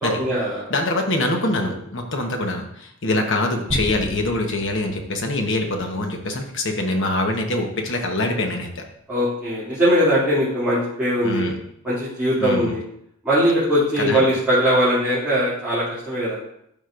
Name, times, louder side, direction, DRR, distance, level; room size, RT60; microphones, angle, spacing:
voice 1, 0.0-0.7 1.6-1.7 3.1-3.2 9.1-11.5 11.8-12.8 13.2-16.4, equal, 5° right, -13 dB, 2.7 m, -20 dB
voice 2, 0.7-8.8 11.2-11.6 12.4-12.7 14.0-14.3, left 2 dB, 60° left, 3 dB, 1.2 m, -24 dB
sound 1, 3.7-6.3, right 1 dB, 65° right, 2.3 m, -33 dB
12.0 x 5.0 x 2.6 m, 0.73 s
head